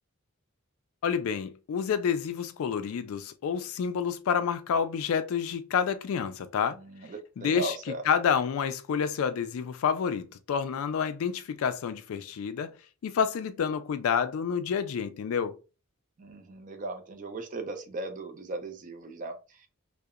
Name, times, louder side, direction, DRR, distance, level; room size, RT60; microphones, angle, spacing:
voice 1, 1.0-6.8 7.4-7.8 8.1-12.7 13.0-15.5, left 7 dB, 70° left, 0.3 m, -29 dB
voice 2, 6.7-8.0 16.2-19.7, right 2 dB, 35° right, 0.4 m, -38 dB
2.7 x 2.0 x 2.3 m
head